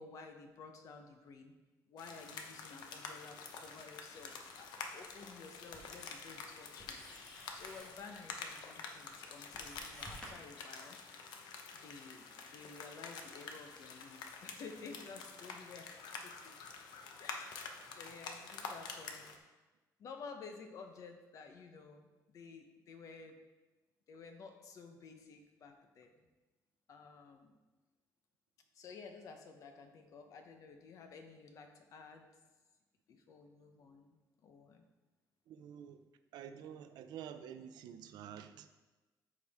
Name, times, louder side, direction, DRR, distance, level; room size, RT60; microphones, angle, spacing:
voice 1, 0.0-1.5 1.9-7.0 7.5-11.0 11.8-16.5 17.2-19.4 20.0-23.4 24.1-26.1 26.9-27.5 28.7-32.2 33.1-34.8, left 4 dB, 50° left, 5 dB, 1.0 m, -53 dB
sound 1, 2.0-19.4, left 5 dB, 85° left, 0.9 m, -48 dB
Writing, 4.1-10.3, right 1 dB, 10° left, 1.7 m, -58 dB
voice 2, 35.5-36.1 36.3-38.7, right 9 dB, 85° right, 10 dB, 0.6 m, -49 dB
13.0 x 4.7 x 3.6 m, 1.2 s
cardioid pair, 175°, 7 cm